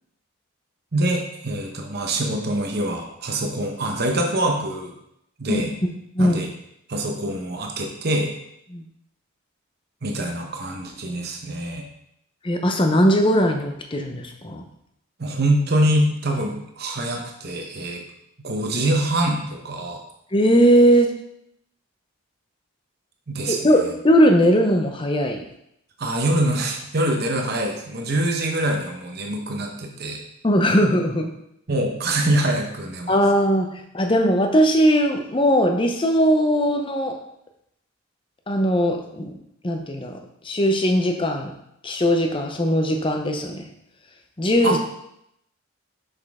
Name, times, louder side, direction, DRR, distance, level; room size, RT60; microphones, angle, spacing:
voice 1, 0.9-4.9 5.4-5.7 6.2-6.5 6.9-8.3 10.0-11.8 15.2-18.0 18.4-20.0 23.3-23.6 26.0-30.2 31.7-33.1 44.6-44.8, right 1 dB, 45° right, 2 dB, 0.9 m, -24 dB
voice 2, 12.4-14.6 20.3-21.1 23.5-25.4 30.4-31.3 33.1-37.2 38.5-39.3 39.6-40.1 40.4-41.5 41.8-43.7 44.4-44.8, equal, 25° left, 4 dB, 0.6 m, -19 dB
6.2 x 5.3 x 3.6 m, 0.77 s
head